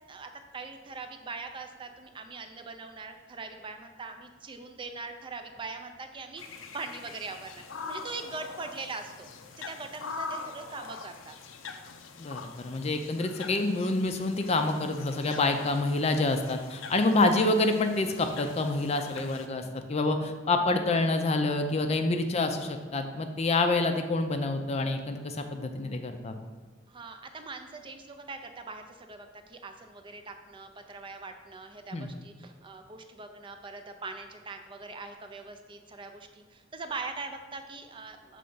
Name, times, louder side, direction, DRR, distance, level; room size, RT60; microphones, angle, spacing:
voice 1, 0.1-6.4 6.7-9.3 9.6-11.4 26.9-38.4, right 3 dB, 25° right, 6 dB, 0.4 m, -42 dB
sound 1, 6.4-19.5, left 4 dB, 90° left, 0.5 m, -44 dB
voice 2, 12.2-26.4 31.9-32.1, left 2 dB, 35° left, 6 dB, 0.4 m, -27 dB
6.3 x 3.4 x 5.5 m, 1.4 s
head